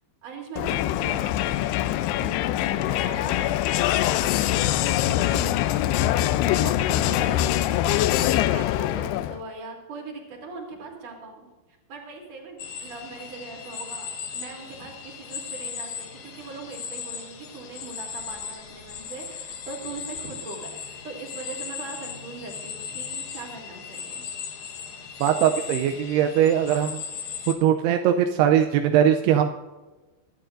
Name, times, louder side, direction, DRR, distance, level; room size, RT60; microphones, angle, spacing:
voice 1, 0.2-1.9 2.1-5.8 6.1-6.2 6.5-11.5 11.9-14.1 14.3-24.2, right 4 dB, 45° right, -1 dB, 4.0 m, -40 dB
Crowd, 0.6-9.4, left 13 dB, 85° left, 2.6 m, -23 dB
sound 1, 12.6-27.5, left 7 dB, 65° left, 2.9 m, -37 dB
voice 2, 25.2-27.0 27.5-29.5, right 9 dB, 85° right, 6 dB, 2.6 m, -20 dB
22.5 x 11.5 x 2.6 m, 1.2 s
omnidirectional pair, 4.7 m